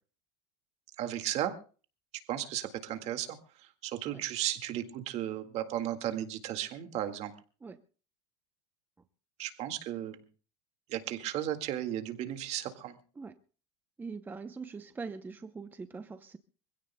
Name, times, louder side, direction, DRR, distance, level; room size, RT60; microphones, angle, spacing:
voice 1, 1.0-1.5 2.3-3.4 3.8-7.3 9.4-10.2 10.9-13.0, right 12 dB, 45° right, 1.9 m, -35 dB
voice 2, 14.0-16.4, right 4 dB, 10° right, 0.7 m, -42 dB
25.5 x 16.5 x 2.2 m
supercardioid pair, 130°, 15 cm